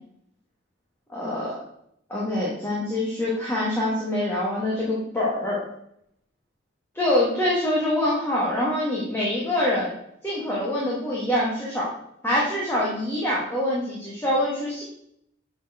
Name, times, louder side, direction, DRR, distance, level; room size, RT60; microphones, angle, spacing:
voice 1, 1.1-1.6 2.1-5.6 6.9-9.9 10.2-11.9 12.2-14.8, left 1 dB, 10° left, -6 dB, 1.4 m, -25 dB
7.1 x 4.3 x 4.8 m, 0.74 s
head